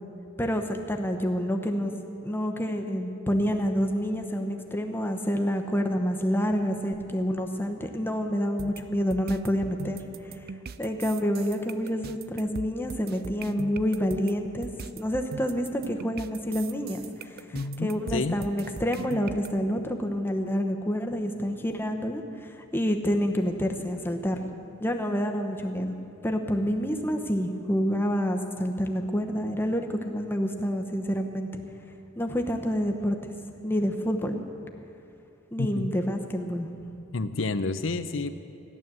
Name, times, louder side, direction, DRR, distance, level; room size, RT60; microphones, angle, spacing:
voice 1, 0.4-1.9 2.2-10.0 10.8-14.7 15.0-17.0 17.3-17.4 17.8-24.4 24.8-25.9 26.2-31.5 32.1-33.2 33.6-34.4 35.5-36.7, equal, 10° left, 3 dB, 0.9 m, -28 dB
sound 1, 8.6-19.5, right 5 dB, 50° right, 0.4 m, -40 dB
voice 2, 17.5-18.4 35.6-35.9 37.1-38.4, left 3 dB, 70° left, 11 dB, 0.7 m, -29 dB
14.5 x 11.0 x 7.6 m, 2.7 s
head